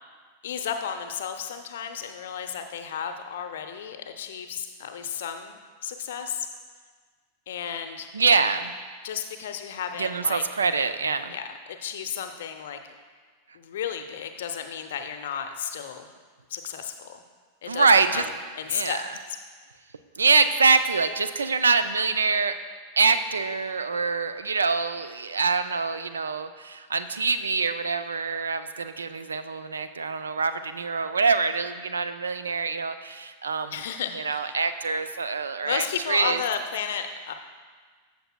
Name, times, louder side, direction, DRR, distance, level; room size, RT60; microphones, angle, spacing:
voice 1, 0.4-6.5 7.5-8.1 9.0-10.4 11.3-12.8 13.5-16.1 16.5-17.2 17.6-18.3 18.6-19.0 19.3-19.4 33.7-34.6 35.6-37.3, left 8 dB, 60° left, 7 dB, 0.6 m, -33 dB
voice 2, 8.1-8.7 10.0-11.3 17.7-18.2 18.7-19.0 20.2-22.6 23.0-33.8 34.1-36.4, right 4 dB, 75° right, 11 dB, 0.4 m, -24 dB
14.5 x 6.7 x 2.2 m, 1.5 s
figure-of-eight pair, 90°, 0 cm